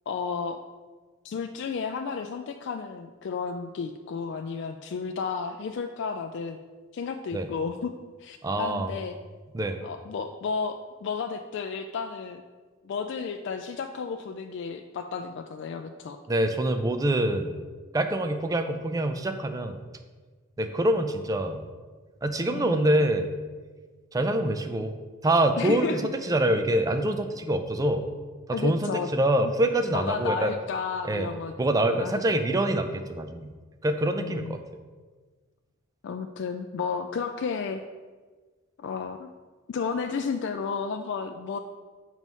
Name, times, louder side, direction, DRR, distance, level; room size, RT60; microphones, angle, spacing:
voice 1, 0.1-0.6 1.2-6.6 6.9-7.9 8.2-9.1 9.8-12.4 12.8-16.2 22.5-22.9 25.6-26.0 28.5-29.1 29.4-29.5 29.9-31.5 31.9-32.2 34.1-34.5 36.0-37.8 38.8-39.3 39.7-41.6, left 5 dB, 60° left, 6 dB, 0.3 m, -32 dB
voice 2, 8.4-8.9 9.5-9.8 16.3-17.6 17.9-19.8 20.6-21.7 22.2-23.3 24.1-24.9 25.2-28.1 28.5-30.5 31.0-31.3 31.6-33.5 33.8-34.6, right 1 dB, 15° right, 6 dB, 0.4 m, -25 dB
7.2 x 3.1 x 5.3 m, 1.4 s
head